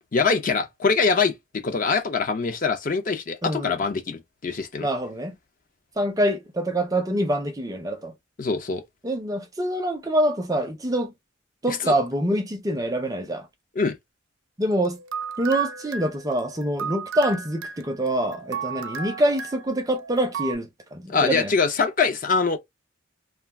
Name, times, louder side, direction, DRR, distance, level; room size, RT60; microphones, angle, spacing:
voice 1, 0.1-4.9 8.4-8.8 11.7-11.9 13.8-13.9 21.1-22.6, left 4 dB, 40° left, 0.5 m, -23 dB
voice 2, 3.4-3.8 4.8-5.4 6.0-8.1 9.0-11.1 11.6-13.5 14.6-15.0 15.4-21.5, right 1 dB, 15° right, 0.5 m, -25 dB
sound 1, 14.7-20.6, right 6 dB, 75° right, 0.4 m, -35 dB
2.3 x 2.3 x 3.2 m
head